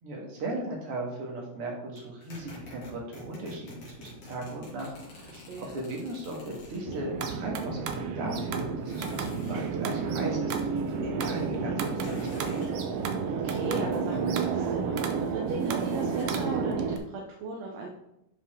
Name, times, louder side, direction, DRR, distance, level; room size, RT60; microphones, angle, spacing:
voice 1, 0.0-12.6, right 1 dB, 45° right, -1 dB, 2.6 m, -37 dB
sound 1, 2.0-7.0 8.9-9.7 12.0-12.8 15.5-16.4, left 2 dB, 60° left, 3.8 m, -47 dB
voice 2, 5.3-5.8 13.2-17.9, right 3 dB, 65° right, 0 dB, 1.8 m, -37 dB
sound 2, 6.8-17.0, right 5 dB, 85° right, 1.3 m, -30 dB
11.5 x 5.5 x 3.8 m, 0.85 s
omnidirectional pair, 3.8 m